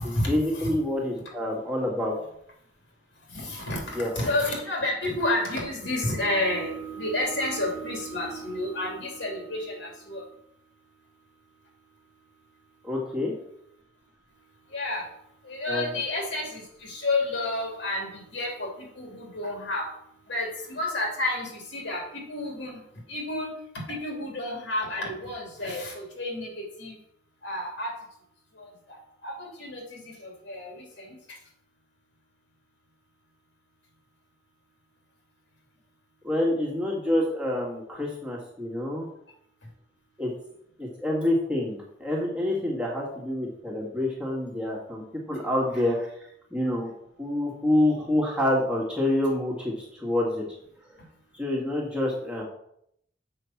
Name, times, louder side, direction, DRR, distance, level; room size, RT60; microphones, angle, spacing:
voice 1, 0.0-2.2 3.9-4.1 12.8-13.3 15.7-15.9 36.2-39.1 40.2-40.3 40.8-45.0 45.3-46.9 47.2-50.4 51.3-52.4, left 1 dB, 5° right, -4 dB, 1.8 m, -27 dB
voice 2, 3.3-10.3 14.7-15.0 15.4-19.8 20.3-22.8 23.1-23.5 23.9-27.0 27.4-27.9 28.6-29.0 29.2-31.1, left 1 dB, 65° left, -1 dB, 2.8 m, -30 dB
7.0 x 5.6 x 5.8 m, 0.73 s
head